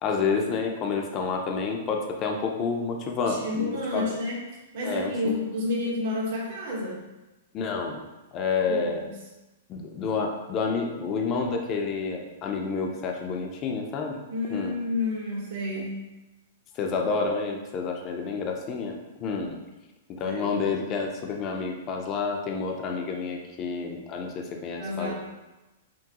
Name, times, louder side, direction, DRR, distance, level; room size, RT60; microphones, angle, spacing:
voice 1, 0.0-4.1 4.8-5.4 7.5-8.0 8.3-9.0 9.7-14.2 14.5-14.8 15.8-15.9 16.8-18.9 19.2-19.6 20.2-25.1, left 5 dB, 30° left, 2 dB, 0.6 m, -29 dB
voice 2, 3.2-4.4 4.7-7.0 8.7-9.2 14.3-16.0 20.2-20.5 24.8-25.1, left 2 dB, 55° right, -5 dB, 1.4 m, -30 dB
5.9 x 2.2 x 2.9 m, 1.1 s
hypercardioid pair, 140°, 0 cm